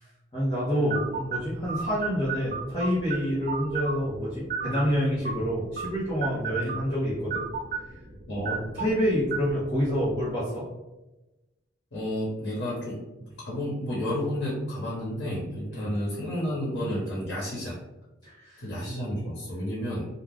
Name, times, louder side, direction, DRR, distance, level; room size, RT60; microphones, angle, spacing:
voice 1, 0.3-7.4 8.3-10.6 15.7-15.9 18.2-18.7, equal, 25° left, -10 dB, 0.7 m, -28 dB
sound 1, 0.9-10.4, right 5 dB, 40° right, 0.4 m, -35 dB
voice 2, 8.3-8.6 11.9-13.0 13.4-17.8 18.6-20.1, equal, 90° left, -7 dB, 1.0 m, -31 dB
2.3 x 2.1 x 3.3 m, 1.0 s
head